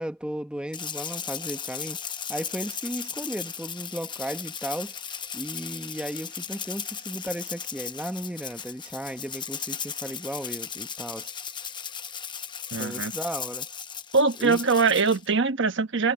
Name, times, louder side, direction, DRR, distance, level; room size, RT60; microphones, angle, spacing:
voice 1, 0.0-5.0 5.3-11.3 12.8-13.7 14.4-14.6, equal, 5° right, 1.0 m, -35 dB
Rattle (instrument), 0.7-15.3, left 7 dB, 20° left, 0.8 m, -36 dB
voice 2, 12.7-13.1 14.1-16.1, right 4 dB, 60° right, 1.2 m, -22 dB
head